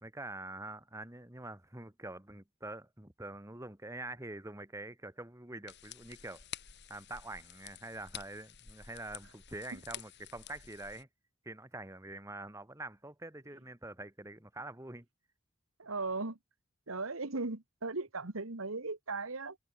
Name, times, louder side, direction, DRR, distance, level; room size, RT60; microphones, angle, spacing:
voice 1, 0.0-6.4 6.9-11.1 11.4-15.1, right 2 dB, 15° right, 1.9 m, -45 dB
sound 1, 5.7-11.0, left 10 dB, 55° left, 3.8 m, -50 dB
voice 2, 15.8-16.4 16.9-19.6, right 3 dB, 80° right, 1.8 m, -37 dB
head